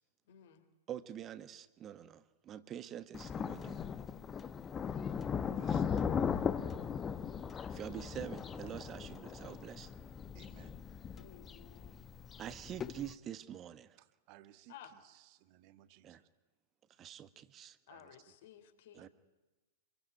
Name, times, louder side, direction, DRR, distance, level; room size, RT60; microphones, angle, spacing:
voice 1, 0.3-0.6 11.2-12.1 14.7-14.9 17.9-19.1, left 10 dB, 55° left, 8 dB, 3.6 m, -56 dB
voice 2, 0.9-3.8 5.6-5.9 7.7-9.9 12.4-14.0 16.0-16.2 17.0-17.8 18.9-19.1, right 10 dB, 25° right, 14 dB, 1.4 m, -46 dB
Thunder, 3.1-13.1, left 7 dB, 20° left, 1.3 m, -38 dB
voice 3, 5.4-6.0 10.3-10.8 14.3-14.7 15.4-16.2 17.9-18.1 19.0-19.1, right 14 dB, 40° right, 12 dB, 1.6 m, -60 dB
26.5 x 23.0 x 9.4 m, 1.1 s
figure-of-eight pair, 100°, 0 cm